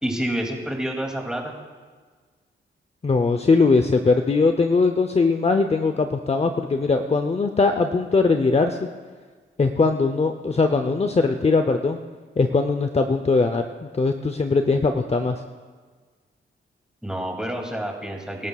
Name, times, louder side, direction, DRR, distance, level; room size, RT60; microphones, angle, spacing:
voice 1, 0.0-1.6 17.0-18.5, right 1 dB, 5° right, 0 dB, 2.6 m, -28 dB
voice 2, 3.0-8.9 9.6-12.0 12.4-15.4, left 4 dB, 30° left, 7 dB, 0.7 m, -20 dB
24.0 x 12.5 x 2.4 m, 1.5 s
cardioid pair, 80°, 21 cm